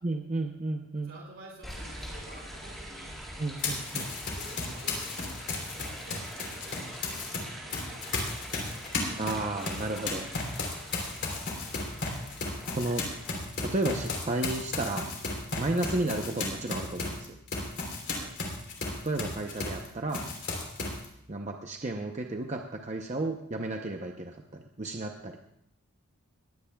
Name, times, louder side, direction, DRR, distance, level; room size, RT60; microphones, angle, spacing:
voice 1, 0.0-1.1 3.4-4.1 9.2-10.2 12.7-13.0 13.6-15.0 15.6-17.4 19.0-20.2 21.3-25.5, right 2 dB, 30° right, 3 dB, 0.7 m, -32 dB
voice 2, 1.0-3.1 4.3-7.2 7.5-9.1 10.8-11.1 18.0-18.3, right 1 dB, 55° right, -2 dB, 2.9 m, -51 dB
sound 1, 1.6-13.5, equal, ahead, 4.5 m, -44 dB
Run, 3.6-7.4 7.7-19.9 20.1-21.1, left 3 dB, 50° left, 3.3 m, -34 dB
20.0 x 16.0 x 2.3 m, 0.75 s
head